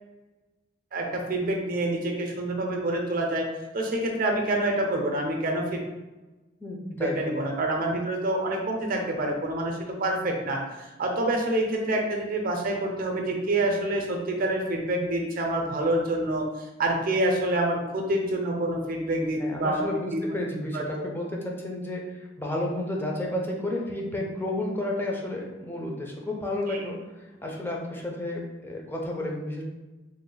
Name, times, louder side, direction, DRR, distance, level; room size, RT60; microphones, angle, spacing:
voice 1, 0.9-3.5 3.7-5.8 6.9-20.2 20.7-21.1 26.7-26.8, right 1 dB, 50° right, 1 dB, 0.5 m, -27 dB
voice 2, 6.6-7.3 19.4-29.6, left 1 dB, 10° left, -1 dB, 0.5 m, -32 dB
3.1 x 2.1 x 3.8 m, 1.1 s
head